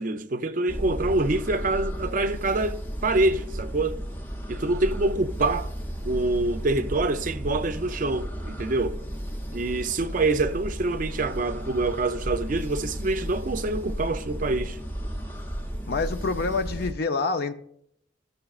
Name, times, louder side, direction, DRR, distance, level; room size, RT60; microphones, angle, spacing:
voice 1, 0.0-4.0 4.5-5.7 6.0-9.0 9.5-14.8, right 2 dB, 45° right, 0.4 m, -26 dB
sound 1, 0.7-16.9, equal, 10° left, 0.7 m, -34 dB
voice 2, 15.9-17.5, left 3 dB, 55° left, 0.5 m, -27 dB
14.5 x 6.7 x 2.4 m
head